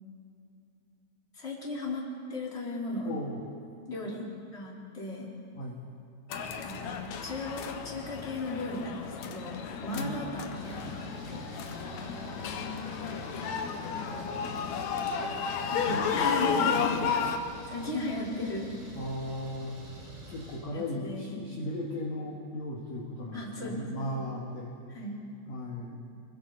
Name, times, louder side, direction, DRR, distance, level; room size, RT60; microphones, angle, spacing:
voice 1, 1.3-3.2 3.9-5.3 6.6-11.4 15.7-17.2 17.7-18.7 20.7-21.3 23.3-24.2 24.9-25.1, left 2 dB, 15° left, -6 dB, 4.1 m, -36 dB
voice 2, 3.1-3.4 5.5-5.8 9.9-10.2 11.5-13.3 13.7-15.0 15.9-17.1 18.9-19.8 20.3-24.7 25.5-26.0, left 1 dB, 50° left, -3 dB, 2.6 m, -38 dB
sound 1, 6.3-17.4, left 6 dB, 80° left, 1.6 m, -33 dB
Engine, 10.5-20.6, equal, 90° right, 8.8 m, -46 dB
29.5 x 21.5 x 4.1 m, 2.8 s
omnidirectional pair, 4.8 m